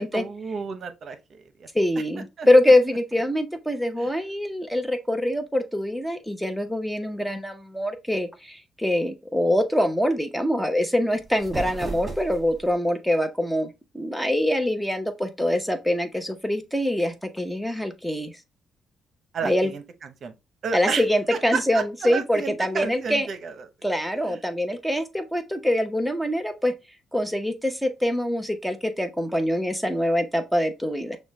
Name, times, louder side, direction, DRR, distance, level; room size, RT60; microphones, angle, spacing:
voice 1, 0.0-1.7 2.4-2.5 4.0-4.1 19.3-19.8 20.2-20.3 20.6-21.0 21.3-23.7 24.2-24.4, right 5 dB, 55° right, 0.8 m, -32 dB
voice 2, 1.7-13.7 13.9-18.3 19.4-19.7 20.7-23.3 23.8-26.7 27.1-31.2, left 1 dB, ahead, 0.8 m, -24 dB
sound 1, 11.1-12.7, right 3 dB, 25° right, 2.2 m, -35 dB
6.2 x 2.2 x 3.1 m
cardioid pair, 90°, 0 cm